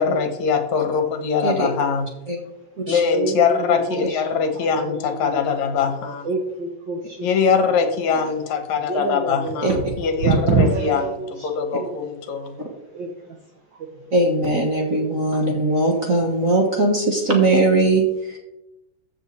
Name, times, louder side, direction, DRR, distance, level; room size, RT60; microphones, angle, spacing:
voice 1, 0.0-2.1 2.9-6.3 7.2-11.0 11.4-12.6, left 6 dB, 75° left, 8 dB, 2.5 m, -22 dB
voice 2, 3.1-5.5 6.2-7.6 8.9-12.0 12.9-13.4 13.7-14.1, right 3 dB, 60° right, 2 dB, 1.2 m, -26 dB
voice 3, 14.1-18.4, right 2 dB, 35° right, 1 dB, 1.5 m, -20 dB
14.5 x 6.7 x 4.2 m, 0.92 s
omnidirectional pair, 3.3 m